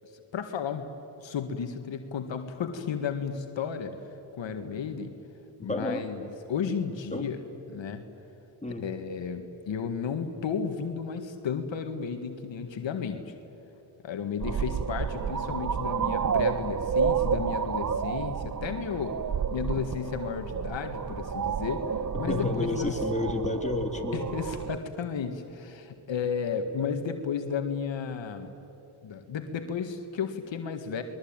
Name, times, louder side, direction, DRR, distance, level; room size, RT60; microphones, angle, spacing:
voice 1, 0.0-3.9 4.3-5.1 5.6-7.4 7.7-8.0 8.7-13.3 14.0-19.2 19.5-21.8 22.2-23.0 24.1-28.5 29.0-31.0, left 6 dB, 70° left, 6 dB, 1.9 m, -33 dB
voice 2, 5.7-6.0 7.1-7.3 8.6-8.8 22.3-24.2, left 2 dB, 15° left, 3 dB, 3.4 m, -30 dB
sound 1, 14.4-24.8, right 6 dB, 40° right, 1.1 m, -30 dB
29.0 x 22.0 x 9.0 m, 2.9 s
cardioid pair, 70°, 46 cm